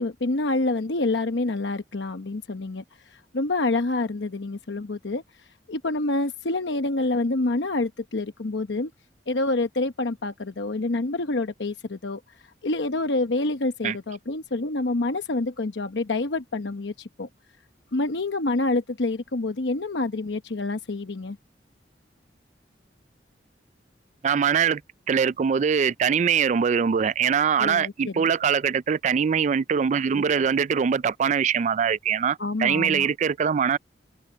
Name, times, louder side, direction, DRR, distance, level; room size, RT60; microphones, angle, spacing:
voice 1, 0.0-2.8 3.1-5.2 5.7-8.9 9.3-12.2 12.6-17.3 17.9-21.4 27.6-28.3 32.4-33.1, left 2 dB, 85° left, 0.9 m, -27 dB
voice 2, 24.2-24.8 25.1-33.8, right 7 dB, 40° right, 0.3 m, -22 dB
head